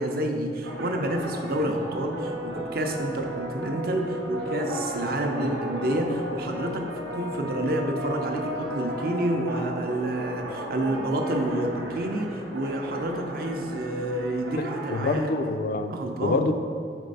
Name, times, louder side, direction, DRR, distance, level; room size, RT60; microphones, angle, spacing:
voice 1, 0.0-15.3 15.9-16.4, right 1 dB, 55° right, 3 dB, 0.5 m, -29 dB
sound 1, 0.6-15.2, equal, 80° right, 0.8 m, -35 dB
voice 2, 14.9-15.9 16.2-16.5, left 3 dB, 50° left, 7 dB, 0.3 m, -25 dB
4.4 x 4.1 x 5.2 m, 2.4 s
head